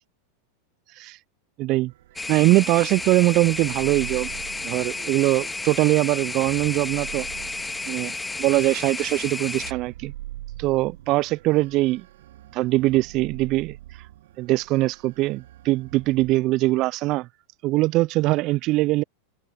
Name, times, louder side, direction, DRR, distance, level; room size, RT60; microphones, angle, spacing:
voice 1, 1.6-1.9 2.3-4.3 4.6-7.3 7.9-8.1 8.4-10.1 10.6-12.0 12.5-13.8 14.4-17.3 17.6-19.0, right 19 dB, 45° right, 0.5 m, -22 dB
sound 1, 1.9-16.3, right 15 dB, 65° right, 2.0 m, -43 dB
sound 2, 2.2-9.7, left 3 dB, 10° left, 2.3 m, -32 dB
open air
hypercardioid pair, 95°, 0 cm